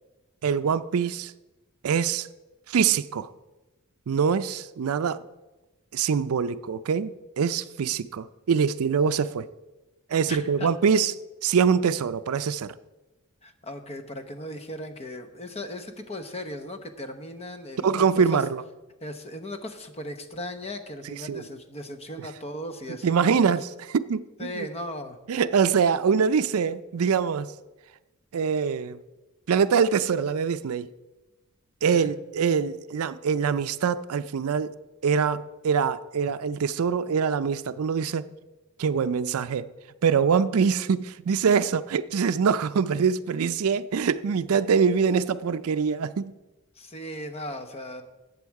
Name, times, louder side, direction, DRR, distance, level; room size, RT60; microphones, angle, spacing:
voice 1, 0.4-1.3 1.8-2.3 2.7-3.3 4.1-5.2 5.9-9.5 10.1-11.1 11.4-12.7 17.8-18.6 21.3-21.4 23.0-24.2 24.5-24.7 25.3-27.5 28.3-29.0 29.5-30.9 31.8-34.7 35.0-38.3 38.8-39.7 40.0-46.3, right 6 dB, 75° right, 0.4 m, -24 dB
voice 2, 10.3-10.7 13.4-18.4 19.0-23.4 24.4-25.2 31.9-32.1 46.7-48.0, left 1 dB, 30° left, 1.0 m, -37 dB
13.5 x 8.4 x 4.7 m
head